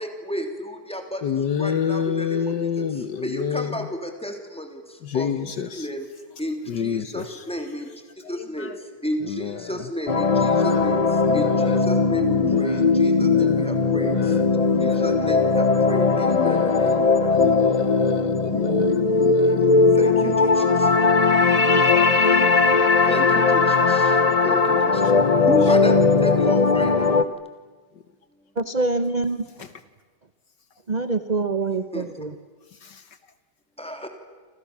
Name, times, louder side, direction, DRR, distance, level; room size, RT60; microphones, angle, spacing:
voice 1, 0.0-1.2 1.6-2.4 2.8-2.9 3.2-4.8 5.1-5.3 5.7-6.0 6.4-7.8 8.3-8.7 9.0-11.0 11.3-14.1 15.0-18.0 19.4-20.6 23.1-24.1 24.4-24.6 25.5-27.1 31.9-32.0 33.8-34.1, equal, 5° left, 4 dB, 3.3 m, -32 dB
voice 2, 1.2-3.7 5.0-5.9 6.7-7.2 8.6-8.7 9.3-9.6 10.3-10.8 11.3-11.8 12.4-12.8 13.2-13.6 14.1-14.4 14.8-15.0 16.3-16.9 17.4-18.9 19.2-19.5 19.9-20.0 21.9-22.1 24.3-24.4 24.7-24.8 32.8-33.0, left 7 dB, 65° left, 12 dB, 1.6 m, -28 dB
sound 1, 10.1-27.2, left 4 dB, 45° left, 0.5 m, -19 dB
voice 3, 28.6-29.4 30.9-32.3, right 3 dB, 35° right, 10 dB, 0.8 m, -25 dB
28.5 x 27.5 x 7.3 m, 1.4 s
omnidirectional pair, 2.2 m